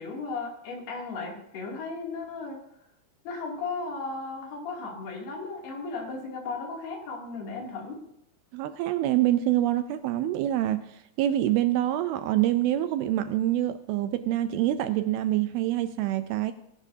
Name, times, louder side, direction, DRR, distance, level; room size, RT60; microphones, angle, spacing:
voice 1, 0.0-2.6 3.2-8.0, left 3 dB, 70° left, -1 dB, 4.7 m, -35 dB
voice 2, 8.5-16.5, right 13 dB, 80° right, 11 dB, 2.3 m, -26 dB
19.5 x 11.5 x 2.8 m, 0.77 s
omnidirectional pair, 4.7 m